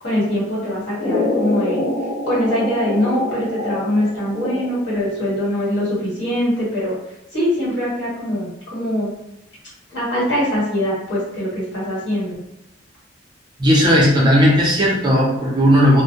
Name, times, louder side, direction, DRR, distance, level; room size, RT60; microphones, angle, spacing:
voice 1, 0.0-1.8 2.2-6.9 7.3-9.1 9.9-12.4, equal, 65° left, -8 dB, 1.4 m, -22 dB
sound 1, 1.0-5.0, left 2 dB, 45° left, 0.7 m, -25 dB
voice 2, 13.6-16.0, equal, 25° right, -4 dB, 0.5 m, -15 dB
2.2 x 2.0 x 2.7 m, 0.86 s
head